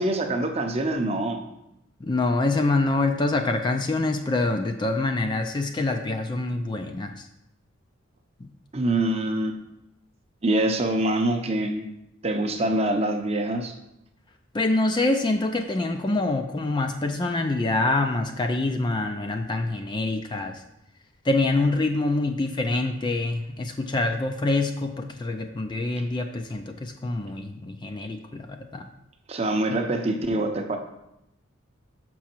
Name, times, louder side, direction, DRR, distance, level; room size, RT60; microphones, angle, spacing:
voice 1, 0.0-1.4 8.7-9.6 10.4-11.9 12.2-13.7 29.3-30.8, right 1 dB, 30° right, 5 dB, 0.6 m, -25 dB
voice 2, 2.0-7.3 8.4-8.5 14.5-20.6 21.3-28.9, left 2 dB, 20° left, 5 dB, 0.3 m, -25 dB
6.1 x 5.7 x 4.4 m, 0.85 s
head